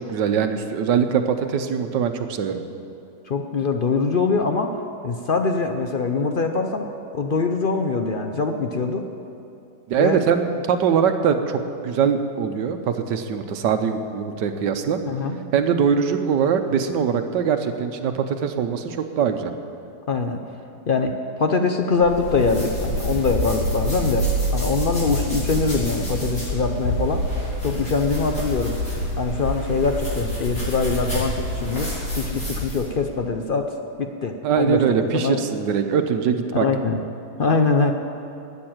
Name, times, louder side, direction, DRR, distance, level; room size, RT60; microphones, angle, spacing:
voice 1, 0.0-2.6 9.9-15.0 15.5-19.5 34.4-36.7, right 7 dB, 80° right, 7 dB, 1.5 m, -22 dB
voice 2, 3.3-4.8 5.0-6.9 7.1-9.1 10.0-10.2 15.1-15.4 20.1-20.4 20.9-21.1 21.4-27.2 27.6-28.8 29.2-33.7 34.0-34.8 35.1-35.4 36.5-37.0 37.4-37.9, left 4 dB, 65° left, 5 dB, 0.5 m, -23 dB
sound 1, 21.9-32.9, equal, 50° left, 4.8 m, -27 dB
12.5 x 9.8 x 8.9 m, 2.8 s
omnidirectional pair, 1.9 m